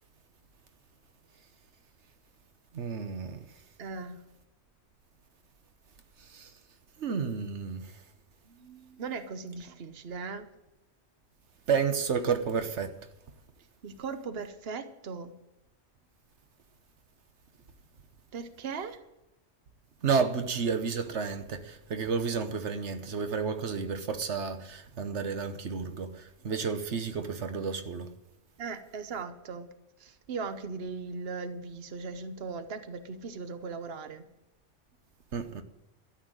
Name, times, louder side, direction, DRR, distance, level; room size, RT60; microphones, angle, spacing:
voice 1, 2.7-3.4 6.3-6.5 7.0-7.9 11.7-12.9 20.0-28.1 35.3-35.6, right 5 dB, 85° right, 1.3 m, -31 dB
voice 2, 3.8-4.2 8.5-10.5 13.8-15.4 18.3-19.0 28.6-29.7 30.0-34.2, right 4 dB, 65° right, 1.1 m, -38 dB
13.5 x 7.2 x 9.0 m
omnidirectional pair, 1.1 m